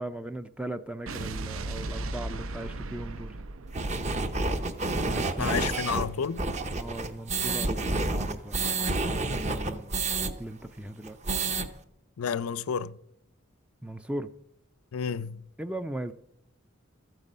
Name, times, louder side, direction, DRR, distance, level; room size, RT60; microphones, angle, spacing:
voice 1, 0.0-3.4 5.0-6.0 6.8-10.1 10.4-11.2 13.8-14.3 15.6-16.1, right 1 dB, 5° right, 0.4 m, -38 dB
Explosion, 1.1-5.4, right 2 dB, 75° right, 0.7 m, -37 dB
sound 1, 3.7-10.3 10.6-10.7 11.0-11.7, right 3 dB, 35° right, 0.8 m, -29 dB
voice 2, 5.4-6.4 12.2-13.0 14.9-15.4, left 7 dB, 85° left, 0.5 m, -30 dB
13.5 x 9.0 x 5.4 m
head